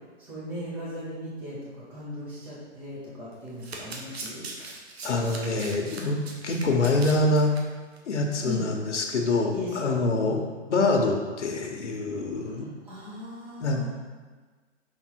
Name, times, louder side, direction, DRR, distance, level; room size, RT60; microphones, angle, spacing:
voice 1, 0.2-4.4 8.4-8.7 9.5-10.4 12.6-13.9, left 1 dB, 5° right, -8 dB, 0.5 m, -37 dB
Domestic sounds home sounds, 3.3-7.6 8.0-8.1 8.4-8.5, right 3 dB, 60° right, 1.2 m, -40 dB
voice 2, 5.0-7.5 8.1-10.4 10.7-12.7 13.6-13.9, left 2 dB, 75° left, 3 dB, 1.3 m, -25 dB
5.7 x 4.2 x 4.6 m, 1.4 s
hypercardioid pair, 155°, 36 cm